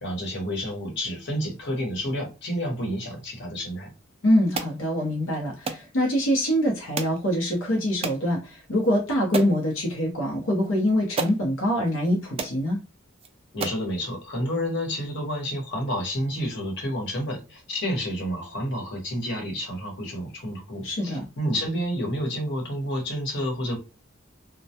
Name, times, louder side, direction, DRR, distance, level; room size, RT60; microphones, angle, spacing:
voice 1, 0.0-3.9 13.5-23.8, equal, 60° left, 1.0 m, -30 dB
voice 2, 4.2-12.8 20.8-21.2, equal, 85° left, 0.7 m, -24 dB
sound 1, 4.5-4.8 5.7-5.9 7.0-7.2 8.0-8.2 8.8-8.9 9.3-9.6 10.6-10.7 11.2-11.4 12.0-12.1 12.4-12.6 13.2-13.3 13.6-13.9, right 4 dB, 30° right, 0.3 m, -30 dB
2.1 x 2.1 x 2.7 m
head